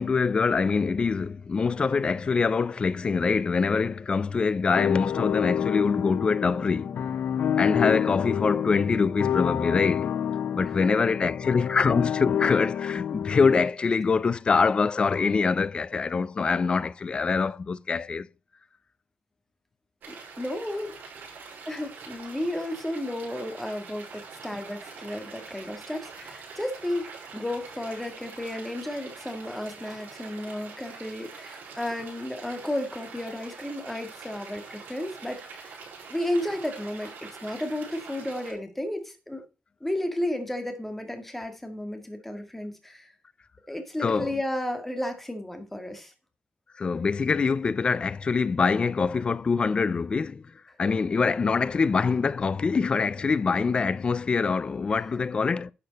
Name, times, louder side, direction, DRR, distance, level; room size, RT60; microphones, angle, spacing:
voice 1, 0.0-6.9 7.6-10.1 10.5-18.3 44.0-44.3 46.8-50.4 50.8-55.7, left 5 dB, 30° left, 0.5 m, -24 dB
sound 1, 4.7-13.7, left 9 dB, 60° left, 0.8 m, -28 dB
sound 2, 20.0-38.5, right 5 dB, 70° right, 5.5 m, -44 dB
voice 2, 20.1-20.9 21.7-27.1 27.3-35.8 36.1-39.4 39.8-43.1 43.7-46.1, left 1 dB, 5° left, 2.1 m, -33 dB
11.5 x 6.9 x 4.2 m
wide cardioid pair, 145°, 3 cm